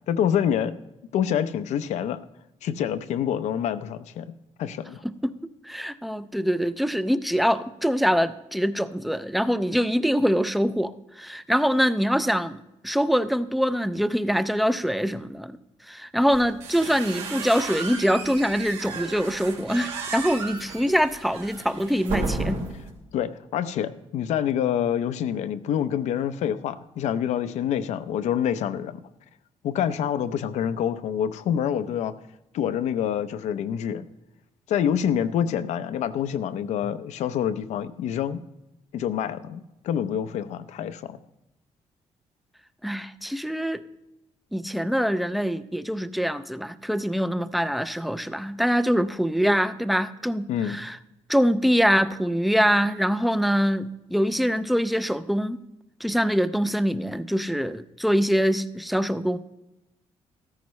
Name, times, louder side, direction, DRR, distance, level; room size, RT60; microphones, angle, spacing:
voice 1, 0.1-0.8 1.1-2.2 2.6-4.3 4.6-5.0 23.1-29.0 29.6-32.1 32.5-34.0 34.7-38.4 38.9-41.2 50.5-50.8, left 9 dB, 90° left, 11 dB, 0.6 m, -26 dB
voice 2, 5.0-12.6 12.8-15.6 15.9-22.6 42.8-43.8 44.5-51.0 51.3-55.6 56.0-59.4, equal, ahead, 13 dB, 0.4 m, -24 dB
sound 1, 16.3-22.9, right 4 dB, 80° right, 3.2 m, -34 dB
14.5 x 13.5 x 3.2 m, 0.91 s
cardioid pair, 170°, 12 cm